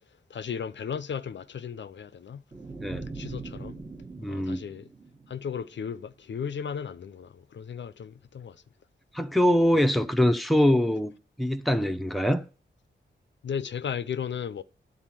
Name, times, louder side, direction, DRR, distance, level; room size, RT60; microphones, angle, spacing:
voice 1, 0.3-2.4 3.1-3.7 4.3-4.9 5.3-8.6 13.4-14.6, left 7 dB, 65° left, 0.5 m, -35 dB
sound 1, 2.5-5.8, right 3 dB, 20° right, 1.2 m, -41 dB
voice 2, 4.2-4.6 9.1-12.4, left 1 dB, ahead, 0.7 m, -23 dB
10.0 x 4.1 x 7.4 m
wide cardioid pair, 80°, 20 cm